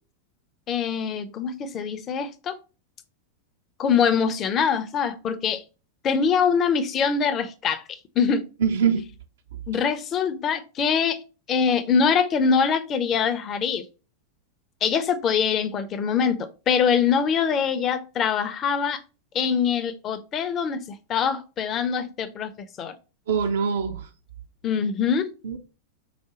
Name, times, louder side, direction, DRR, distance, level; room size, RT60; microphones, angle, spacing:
voice 1, 0.7-2.6 3.8-5.6 6.0-8.5 9.7-11.2 11.5-13.9 14.8-19.0 19.3-22.5 22.8-22.9 24.6-25.3, left 6 dB, 30° left, 0.5 m, -23 dB
voice 2, 8.6-9.1 23.3-24.1 25.4-25.6, right 6 dB, 60° right, 0.4 m, -23 dB
4.8 x 2.1 x 2.9 m
figure-of-eight pair, 90°, 0 cm